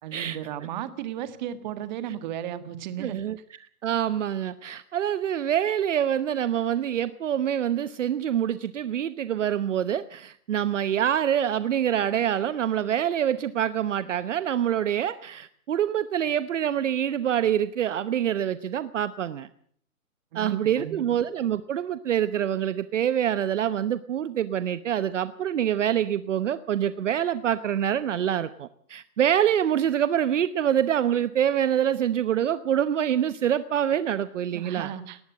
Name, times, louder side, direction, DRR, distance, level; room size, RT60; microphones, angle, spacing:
voice 1, 0.0-3.2 20.3-21.0 34.5-35.2, right 10 dB, 30° right, 12 dB, 1.7 m, -35 dB
voice 2, 3.0-3.4 3.8-19.5 20.3-34.9, right 10 dB, 55° right, 14 dB, 1.0 m, -26 dB
19.0 x 14.5 x 9.7 m, 0.62 s
hypercardioid pair, 155°, 44 cm